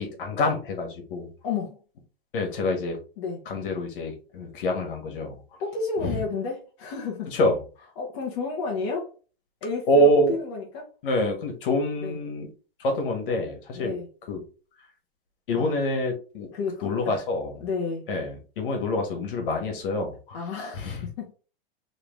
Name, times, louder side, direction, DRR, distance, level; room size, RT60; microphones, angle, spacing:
voice 1, 0.0-1.3 2.3-3.0 3.5-5.4 6.0-6.2 7.3-7.6 9.9-10.4 11.0-12.5 12.8-14.0 14.3-14.4 15.5-16.5 16.8-17.5 18.1-20.4 20.7-21.1, left 1 dB, 55° left, 3 dB, 1.5 m, -26 dB
voice 2, 1.4-1.8 3.2-3.4 5.6-7.3 8.0-9.1 9.6-10.9 12.0-12.2 13.7-14.1 15.5-15.8 16.5-17.2 17.6-18.1 20.3-21.3, left 4 dB, 30° left, -2 dB, 0.8 m, -31 dB
3.8 x 3.1 x 3.0 m, 0.36 s
supercardioid pair, 175°, 31 cm